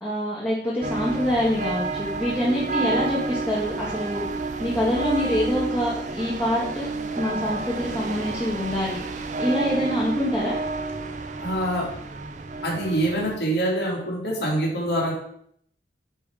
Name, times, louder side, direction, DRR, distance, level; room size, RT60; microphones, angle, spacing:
voice 1, 0.0-4.2 4.6-6.9 7.2-10.6, left 1 dB, 10° left, -9 dB, 1.8 m, -25 dB
sound 1, 0.8-13.4, right 3 dB, 40° right, 0.5 m, -30 dB
voice 2, 11.4-11.9 12.6-15.1, right 1 dB, 60° left, -3 dB, 2.8 m, -25 dB
9.9 x 3.6 x 4.9 m, 0.68 s
head